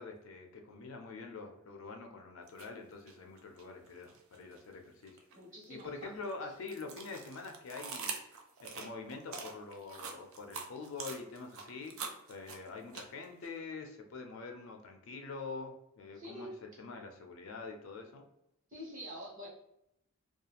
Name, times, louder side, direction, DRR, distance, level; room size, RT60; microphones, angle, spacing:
voice 1, 0.0-5.2 5.7-8.1 8.6-12.0 12.3-18.3, left 4 dB, 65° left, 4 dB, 0.4 m, -45 dB
sound 1, 2.5-2.7 3.1-4.6 5.0-13.5, right 5 dB, 65° right, 0.4 m, -44 dB
voice 2, 5.3-6.1 16.1-16.5 18.7-19.5, equal, 35° right, -5 dB, 1.0 m, -46 dB
2.4 x 2.4 x 2.8 m, 0.81 s
head